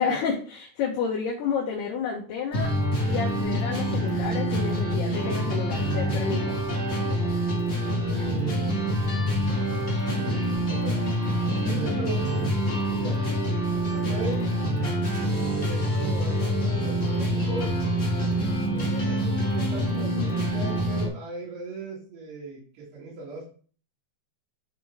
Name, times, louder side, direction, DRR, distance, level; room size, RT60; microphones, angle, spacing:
voice 1, 0.0-2.7 3.0-6.6, left 6 dB, 75° left, -2 dB, 3.1 m, -30 dB
sound 1, 2.5-21.1, equal, 60° left, 0.6 m, -26 dB
voice 2, 8.1-8.7 10.1-11.0 11.6-13.3 13.8-14.5 15.2-17.8 18.7-23.5, right 3 dB, 75° right, -6 dB, 4.3 m, -38 dB
11.0 x 3.8 x 3.6 m, 0.41 s
omnidirectional pair, 4.8 m